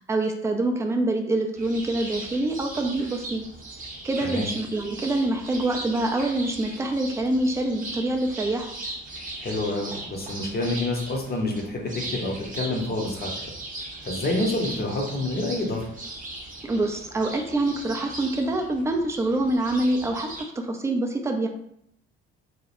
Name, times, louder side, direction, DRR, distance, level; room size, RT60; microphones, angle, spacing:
voice 1, 0.1-3.4 4.0-8.7 16.6-21.5, right 2 dB, 10° right, 3 dB, 0.3 m, -25 dB
sound 1, 1.5-20.4, right 2 dB, 25° right, 0.8 m, -38 dB
voice 2, 9.4-13.3 14.0-15.9, left 2 dB, 30° left, 0 dB, 0.7 m, -28 dB
2.1 x 2.0 x 2.9 m, 0.73 s
hypercardioid pair, 50°, 31 cm